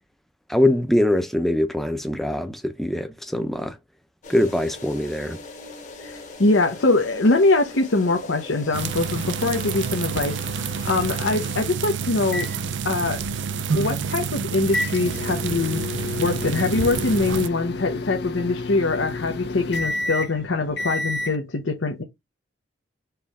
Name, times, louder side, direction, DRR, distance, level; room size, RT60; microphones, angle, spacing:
voice 1, 0.5-3.8 4.3-5.4, left 1 dB, ahead, 0.5 m, -22 dB
sound 1, 4.2-11.7, left 2 dB, 40° left, 1.4 m, -40 dB
voice 2, 6.0-12.5 12.8-13.2 13.7-15.8 16.2-22.0, left 2 dB, 90° left, 0.8 m, -23 dB
sound 2, 8.7-17.5, right 6 dB, 75° right, 0.5 m, -28 dB
sound 3, 12.3-21.4, left 2 dB, 60° left, 0.7 m, -31 dB
4.7 x 3.1 x 3.5 m
head